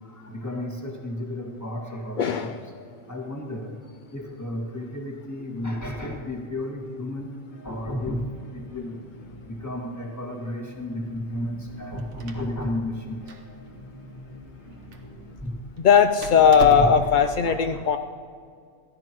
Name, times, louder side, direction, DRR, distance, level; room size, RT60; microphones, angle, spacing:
voice 1, 0.0-3.7 4.1-7.4 7.6-8.3 8.5-9.0 9.5-13.2 15.4-15.6 16.4-16.5 16.8-17.0 17.2-17.9, left 1 dB, 15° left, 0 dB, 1.9 m, -33 dB
voice 2, 2.2-2.6 15.8-18.0, left 7 dB, 65° left, 8 dB, 0.4 m, -18 dB
sound 1, 7.5-15.3, left 1 dB, 40° left, 3.4 m, -46 dB
Door, 11.7-17.3, right 3 dB, 85° right, 1.4 m, -37 dB
23.0 x 15.5 x 3.0 m, 2.1 s
omnidirectional pair, 1.4 m